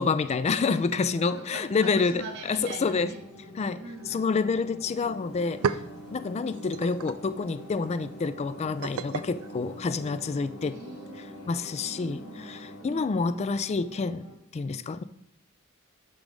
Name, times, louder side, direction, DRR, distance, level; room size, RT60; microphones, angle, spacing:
voice 1, 0.0-2.2 2.5-3.1 3.6-5.6 6.1-10.8 11.5-14.2 14.5-15.0, left 4 dB, 30° left, 14 dB, 0.3 m, -28 dB
voice 2, 1.0-3.2 3.8-4.2 10.6-13.4, right 3 dB, 55° right, 0 dB, 0.8 m, -43 dB
sound 1, 1.3-14.4, left 1 dB, 85° left, 1.2 m, -48 dB
sound 2, 4.9-5.0 5.3-10.5, right 6 dB, 85° right, 0.4 m, -37 dB
sound 3, 5.0-12.8, right 1 dB, 50° left, 1.6 m, -46 dB
6.1 x 5.1 x 5.3 m, 0.71 s
head